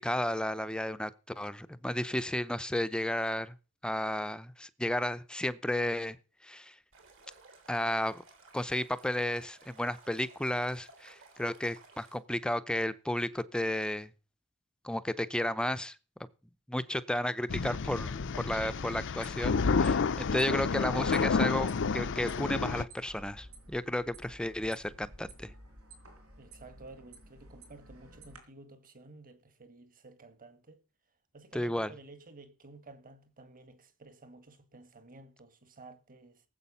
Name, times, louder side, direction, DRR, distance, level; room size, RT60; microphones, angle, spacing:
voice 1, 0.0-3.5 3.8-6.2 6.4-6.7 7.7-8.2 8.5-14.1 14.8-16.0 16.7-25.5 31.5-31.9, left 1 dB, 5° left, 0.6 m, -33 dB
Stream, 6.9-12.2, right 3 dB, 65° right, 3.8 m, -57 dB
sound 1, 17.5-22.8, left 5 dB, 60° left, 0.6 m, -30 dB
sound 2, 18.3-28.4, right 1 dB, 90° right, 4.6 m, -54 dB
voice 2, 26.4-30.8 31.3-36.4, right 2 dB, 40° right, 1.9 m, -53 dB
18.5 x 7.9 x 5.6 m
head